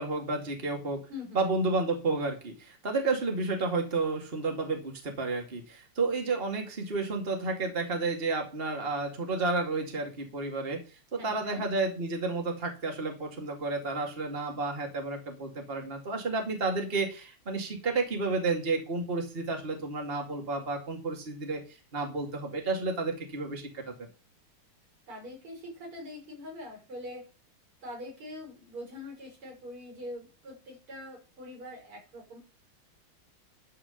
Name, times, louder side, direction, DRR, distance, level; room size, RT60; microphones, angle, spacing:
voice 1, 0.0-1.0 1.3-10.8 11.1-21.6 21.9-24.1, right 3 dB, 25° right, 2 dB, 2.5 m, -31 dB
voice 2, 1.1-1.4 11.2-11.6 25.1-27.3 27.8-32.4, left 1 dB, 90° right, 0 dB, 7.0 m, -43 dB
13.0 x 5.0 x 7.0 m, 0.33 s
omnidirectional pair, 2.3 m